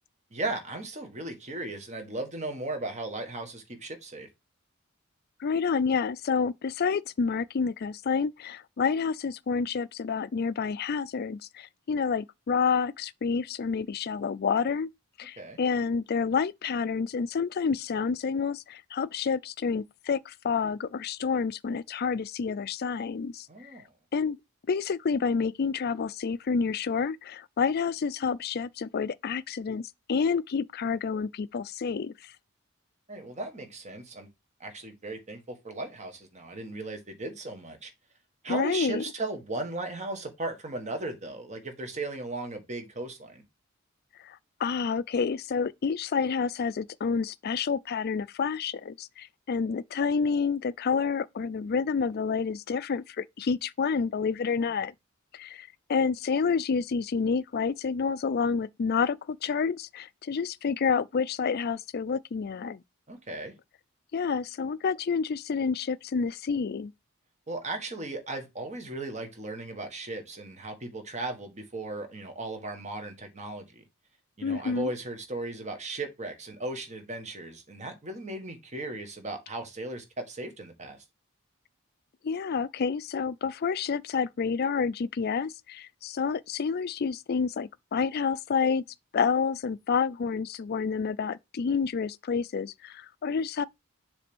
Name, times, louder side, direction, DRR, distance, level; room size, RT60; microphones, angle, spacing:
voice 1, 0.3-4.3 15.4-15.6 23.5-23.9 33.1-34.3 34.6-37.9 38.4-43.4 63.1-63.5 67.5-73.8 74.4-81.0, right 2 dB, 35° right, 1.6 m, -36 dB
voice 2, 5.4-14.9 15.2-23.7 24.1-24.4 24.7-32.3 38.5-39.0 44.2-54.9 55.3-62.8 64.1-66.9 74.4-74.9 82.2-88.8 89.1-93.6, left 5 dB, 50° left, 0.4 m, -29 dB
7.0 x 3.4 x 6.1 m
head